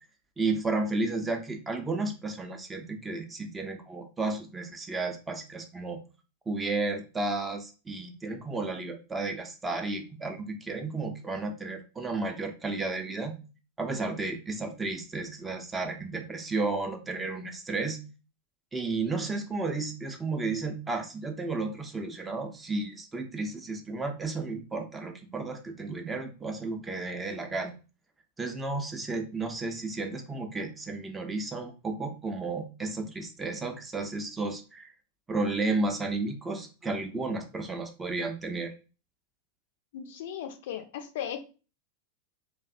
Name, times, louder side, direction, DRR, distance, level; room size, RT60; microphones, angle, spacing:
voice 1, 0.4-6.0 6.5-13.3 13.8-18.0 18.7-27.7 28.4-34.9 35.3-38.7, right 3 dB, 15° right, 5 dB, 0.4 m, -33 dB
voice 2, 39.9-41.4, left 9 dB, 55° left, 7 dB, 0.4 m, -37 dB
2.5 x 2.0 x 2.4 m, 0.33 s
figure-of-eight pair, 90°, 0 cm